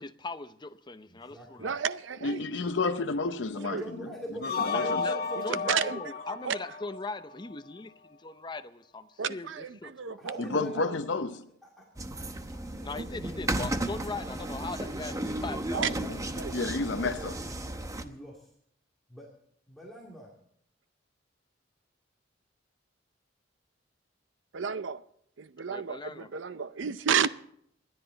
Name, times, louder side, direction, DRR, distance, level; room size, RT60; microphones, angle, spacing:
voice 1, 0.0-1.8 4.4-5.2 5.4-10.2 12.8-16.0 25.7-26.3, left 3 dB, 25° left, 0.7 m, -40 dB
voice 2, 1.1-1.7 3.5-6.0 10.2-10.8 11.6-11.8 12.5-13.6 15.1-17.5 18.0-18.5 19.1-19.3 19.7-20.3, right 1 dB, ahead, 2.3 m, -43 dB
voice 3, 1.6-2.4 3.6-3.8 4.7-4.9 5.7-6.0 6.4-6.6 9.2-10.6 15.7-15.9 16.4-16.6 24.5-25.0 25.4-27.3, right 7 dB, 90° right, 0.6 m, -31 dB
voice 4, 2.2-3.8 4.4-5.0 10.4-11.5 16.5-17.4, left 3 dB, 70° left, 0.7 m, -30 dB
sound 1, 4.4-7.5, left 5 dB, 55° left, 1.1 m, -33 dB
sound 2, 12.0-18.0, right 1 dB, 20° right, 0.9 m, -34 dB
27.0 x 11.0 x 4.0 m
head